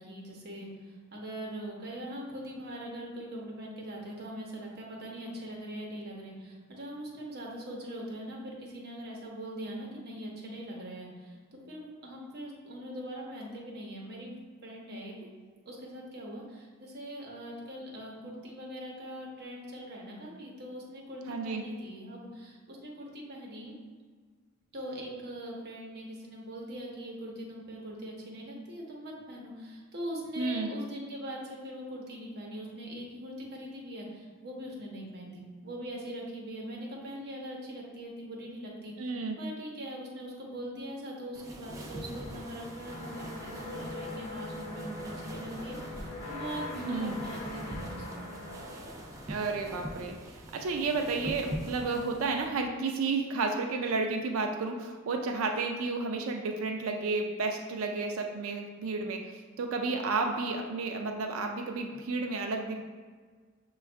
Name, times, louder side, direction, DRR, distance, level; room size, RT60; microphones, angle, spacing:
voice 1, 0.0-14.3 14.6-15.1 15.6-23.7 24.7-39.1 39.4-48.3, equal, 50° right, -2 dB, 0.9 m, -42 dB
voice 2, 21.3-21.6 30.4-30.7 39.0-39.4 46.8-47.2 49.3-59.3 59.6-62.8, right 3 dB, 90° right, 3 dB, 0.4 m, -32 dB
sound 1, 41.3-52.5, right 1 dB, 15° right, 0.4 m, -43 dB
sound 2, 42.1-50.0, left 2 dB, 30° left, 0.7 m, -42 dB
6.1 x 2.3 x 3.4 m, 1.5 s
head